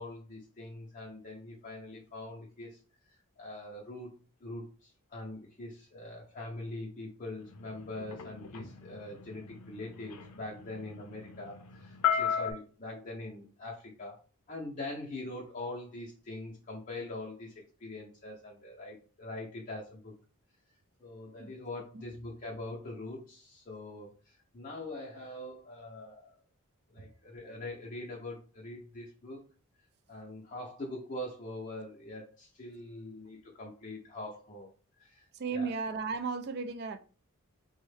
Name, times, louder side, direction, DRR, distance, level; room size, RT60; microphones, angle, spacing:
voice 1, 0.0-2.8 3.1-4.1 4.4-14.2 14.5-17.5 17.8-20.1 21.0-26.3 26.9-29.4 30.1-34.7 35.0-35.7, left 2 dB, 35° left, 0.5 m, -43 dB
sound 1, 7.5-12.5, left 8 dB, 85° left, 0.5 m, -35 dB
voice 2, 35.3-37.0, right 4 dB, 45° right, 0.3 m, -35 dB
3.5 x 2.1 x 3.2 m
head